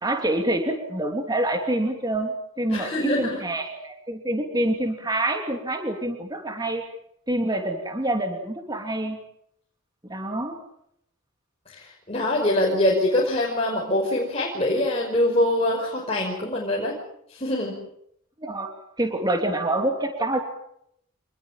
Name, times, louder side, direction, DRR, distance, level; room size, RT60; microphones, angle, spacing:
voice 1, 0.0-6.8 7.3-9.2 10.1-10.6 18.4-18.7 19.0-20.4, right 1 dB, 20° right, 4 dB, 2.9 m, -26 dB
voice 2, 2.7-3.4 11.7-17.0 17.3-17.7, left 1 dB, 30° left, -2 dB, 5.5 m, -24 dB
27.5 x 21.0 x 7.5 m, 0.72 s
head